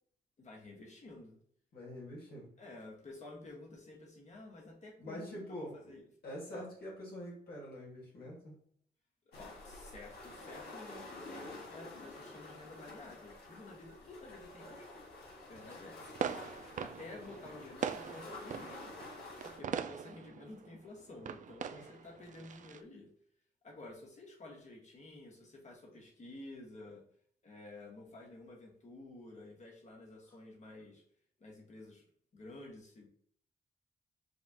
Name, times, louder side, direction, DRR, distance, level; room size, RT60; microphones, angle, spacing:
voice 1, 0.4-1.4 2.6-6.0 6.5-6.7 9.3-14.9 15.5-16.1 16.8-18.9 19.4-23.1 23.6-27.0 27.4-31.0 31.4-32.0 32.3-33.1, left 2 dB, 45° left, -1 dB, 1.5 m, -51 dB
voice 2, 1.7-2.5 5.0-5.9 6.2-8.5 21.7-22.0, equal, 70° left, -4 dB, 1.8 m, -45 dB
sound 1, 9.3-19.6, left 2 dB, 85° left, 1.6 m, -49 dB
sound 2, 16.0-22.8, right 8 dB, 50° right, 0.4 m, -42 dB
7.1 x 2.4 x 2.9 m, 0.63 s
cardioid pair, 85°, 17 cm